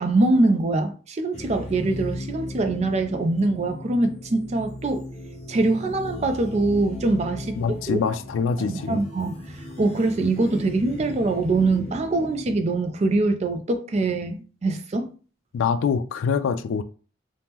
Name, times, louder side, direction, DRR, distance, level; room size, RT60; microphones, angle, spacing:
voice 1, 0.0-5.0 5.5-7.6 7.9-8.0 8.7-15.1, right 2 dB, 35° right, 0.4 m, -23 dB
sound 1, 1.3-12.6, left 1 dB, 35° left, 0.7 m, -37 dB
voice 2, 7.6-9.0 15.5-16.8, left 6 dB, 90° left, 0.3 m, -25 dB
3.4 x 2.1 x 2.8 m
head